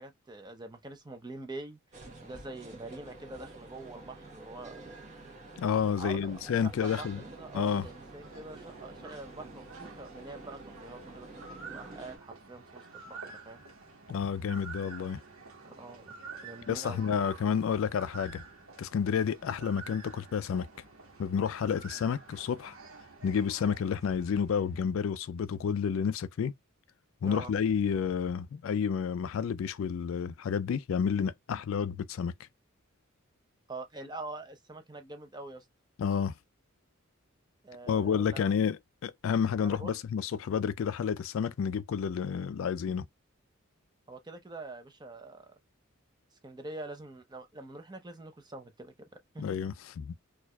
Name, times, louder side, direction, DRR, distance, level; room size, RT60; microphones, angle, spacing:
voice 1, 0.0-1.8 2.2-4.8 5.9-13.6 15.6-16.1 16.4-17.0 27.2-27.5 33.7-35.7 37.6-38.4 39.6-40.0 44.1-45.6 46.4-49.6, right 2 dB, 20° right, 0.6 m, -45 dB
sound 1, 1.9-12.2, right 2 dB, 35° right, 1.1 m, -49 dB
voice 2, 5.6-7.2 7.5-7.9 14.1-15.2 16.7-18.4 18.8-20.7 21.2-22.7 23.2-26.5 27.2-32.3 36.0-36.3 37.9-43.1 49.4-50.1, left 7 dB, 65° left, 0.3 m, -30 dB
sound 2, 6.6-24.9, right 4 dB, 75° right, 1.1 m, -50 dB
4.4 x 2.5 x 2.2 m
head